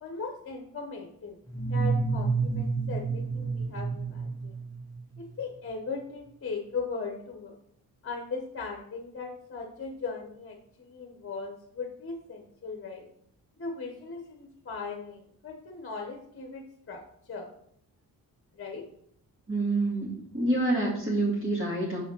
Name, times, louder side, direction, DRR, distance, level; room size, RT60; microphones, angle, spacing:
voice 1, 0.0-1.4 1.7-4.6 5.4-7.6 8.0-13.1 13.6-17.0 17.3-17.5 18.5-18.8, left 4 dB, 35° left, 2 dB, 1.0 m, -38 dB
sound 1, 1.5-5.2, right 4 dB, 10° left, 1.0 m, -29 dB
voice 2, 19.5-22.0, right 2 dB, 35° right, -6 dB, 2.2 m, -27 dB
5.9 x 5.0 x 6.0 m, 0.70 s
wide cardioid pair, 120°, 38 cm